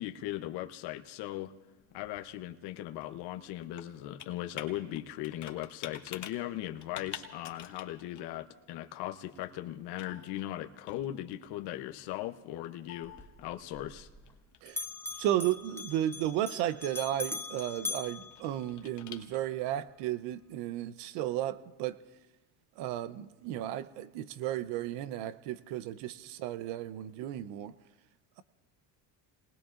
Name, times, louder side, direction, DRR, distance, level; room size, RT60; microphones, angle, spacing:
voice 1, 0.0-1.5 1.9-13.1 13.4-14.1, left 14 dB, 70° left, 0.8 m, -38 dB
Computer keyboard, 1.5-19.7, left 9 dB, 45° left, 1.4 m, -51 dB
Bell, 13.0-14.4 14.7-19.1, left 3 dB, 5° left, 0.6 m, -42 dB
voice 2, 15.2-22.0 22.8-27.7, right 12 dB, 80° right, 0.7 m, -34 dB
29.0 x 19.5 x 2.5 m
cardioid pair, 110°, 41 cm